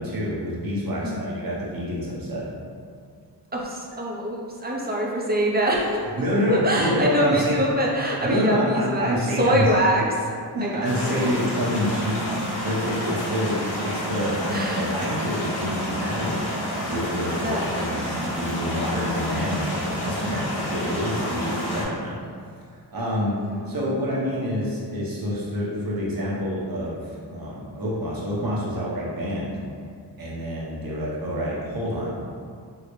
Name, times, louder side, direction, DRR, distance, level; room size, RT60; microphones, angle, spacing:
voice 1, 0.0-2.4 6.2-7.6 8.2-9.6 10.5-12.2 12.6-16.5 16.9-22.2 22.7-23.3 23.7-29.6 30.2-32.4, equal, 55° right, -6 dB, 0.9 m, -27 dB
voice 2, 1.0-1.4 3.5-6.1 6.3-10.3 10.6-11.3 13.4-13.5 14.5-14.9 17.3-18.4 23.3-23.8, equal, 25° right, -2 dB, 0.5 m, -25 dB
sound 1, 10.8-21.8, equal, 70° left, 0.9 m, -29 dB
3.7 x 2.1 x 3.0 m, 2.1 s
wide cardioid pair, 75°, 42 cm